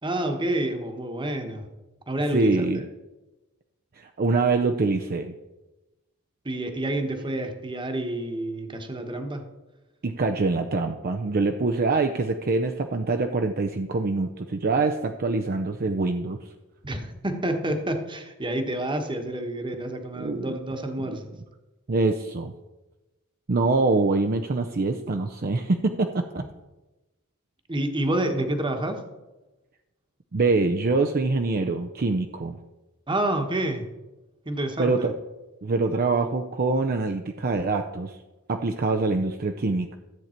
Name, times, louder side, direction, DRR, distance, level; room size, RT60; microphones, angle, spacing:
voice 1, 0.0-1.7 2.1-2.6 6.4-9.5 16.8-21.3 27.7-29.0 33.1-33.9 34.4-35.1, right 1 dB, 20° right, 5 dB, 1.2 m, -28 dB
voice 2, 2.3-2.8 4.0-5.3 10.0-16.5 20.2-20.5 21.0-21.1 21.9-22.5 23.5-26.4 30.3-32.6 34.8-35.1 35.6-38.2 38.5-39.9, right 3 dB, 45° right, 5 dB, 0.6 m, -24 dB
13.5 x 8.1 x 4.4 m, 1.1 s
head